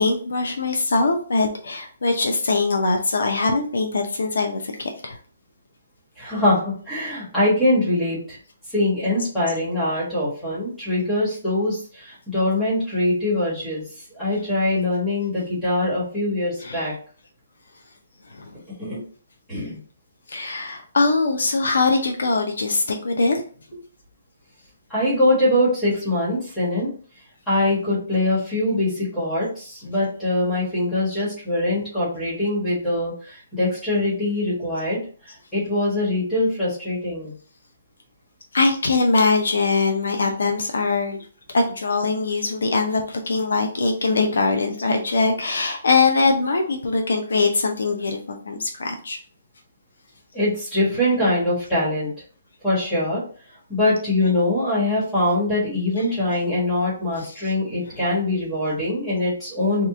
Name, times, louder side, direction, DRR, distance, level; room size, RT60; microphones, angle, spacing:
voice 1, 0.0-5.2 16.6-16.9 18.3-18.5 20.3-23.4 38.5-41.2 41.5-49.2 57.9-58.0, left 3 dB, 75° left, 3 dB, 0.6 m, -22 dB
voice 2, 6.2-8.4 8.7-13.8 14.1-16.9 18.8-19.0 19.5-19.8 24.9-26.9 27.5-35.0 35.5-37.3 50.3-52.1 52.6-53.2 53.7-59.9, left 1 dB, 5° left, -9 dB, 1.4 m, -23 dB
2.9 x 2.4 x 3.5 m, 0.42 s
hypercardioid pair, 180°, 0 cm